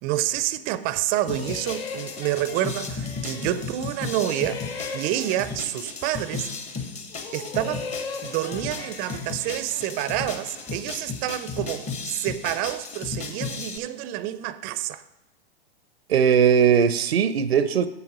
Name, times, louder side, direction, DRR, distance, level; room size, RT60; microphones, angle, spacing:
voice 1, 0.0-4.6 4.9-6.5 7.3-7.9 8.2-15.0, right 14 dB, 30° right, 0.5 m, -28 dB
sound 1, 1.1-3.8 4.1-6.7 7.1-10.9, left 5 dB, 75° left, 1.0 m, -39 dB
sound 2, 1.3-13.8, left 4 dB, 20° left, 1.0 m, -35 dB
voice 2, 16.1-17.9, right 7 dB, 80° right, 0.6 m, -19 dB
8.1 x 7.0 x 4.8 m
hypercardioid pair, 110°, 31 cm